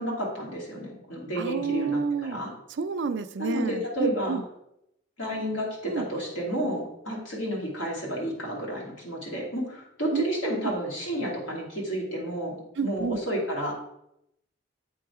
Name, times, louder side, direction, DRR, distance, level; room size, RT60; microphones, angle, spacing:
voice 1, 0.0-2.5 3.4-4.4 5.2-13.7, equal, 85° left, -3 dB, 2.3 m, -31 dB
voice 2, 1.4-2.4 2.7-4.4 5.8-6.1 10.1-10.7 12.8-13.2, right 5 dB, 65° right, 11 dB, 0.4 m, -30 dB
8.5 x 3.9 x 4.8 m, 0.80 s
head